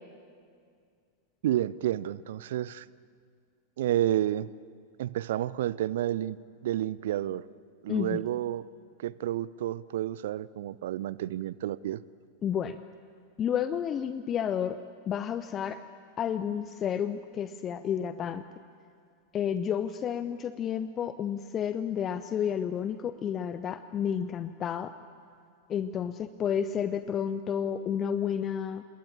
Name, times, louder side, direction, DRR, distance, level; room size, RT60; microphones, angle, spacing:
voice 1, 1.4-2.9 3.8-4.5 5.0-7.4 7.8-8.7 9.0-12.0, right 12 dB, 55° right, 20 dB, 0.6 m, -30 dB
voice 2, 7.9-8.2 12.4-12.8 13.4-14.8 15.1-15.8 16.2-18.4 19.3-24.9 25.7-28.8, left 8 dB, 30° left, 12 dB, 0.7 m, -31 dB
27.5 x 21.0 x 8.8 m, 2.2 s
figure-of-eight pair, 90°, 0 cm